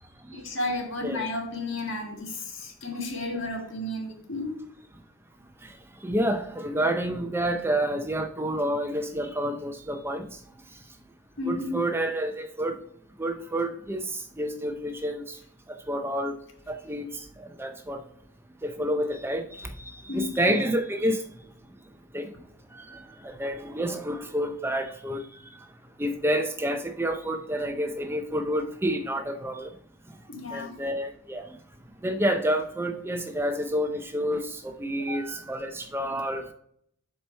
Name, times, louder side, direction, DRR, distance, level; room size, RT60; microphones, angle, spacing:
voice 1, 0.3-4.6 11.4-11.8 20.1-20.4 30.3-30.7 35.0-35.2, left 2 dB, 65° left, 2 dB, 1.7 m, -32 dB
voice 2, 6.0-10.3 11.4-12.8 13.2-15.4 15.7-16.4 16.7-17.1 17.4-18.0 18.6-21.2 22.1-22.3 22.7-25.2 26.0-29.7 30.5-31.4 32.0-36.5, right 1 dB, 10° right, 6 dB, 0.5 m, -29 dB
7.7 x 4.4 x 4.3 m, 0.68 s
head